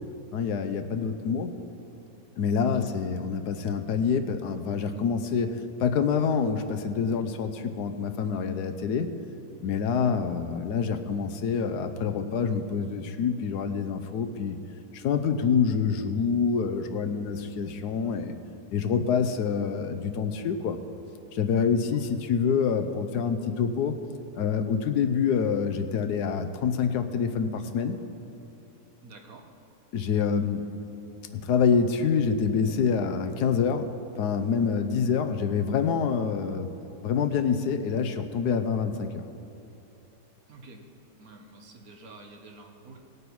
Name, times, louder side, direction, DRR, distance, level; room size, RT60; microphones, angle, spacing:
voice 1, 0.3-1.5 2.4-9.1 9.6-14.6 14.9-18.3 18.7-20.8 21.3-24.0 24.4-28.0 29.9-30.6 31.3-33.9 34.2-36.7 37.0-39.2, left 6 dB, 75° left, 8 dB, 1.3 m, -26 dB
voice 2, 29.0-29.4 40.5-40.8 41.2-43.0, right 3 dB, 60° right, 2 dB, 1.7 m, -48 dB
18.0 x 8.1 x 4.7 m, 2.8 s
omnidirectional pair, 1.8 m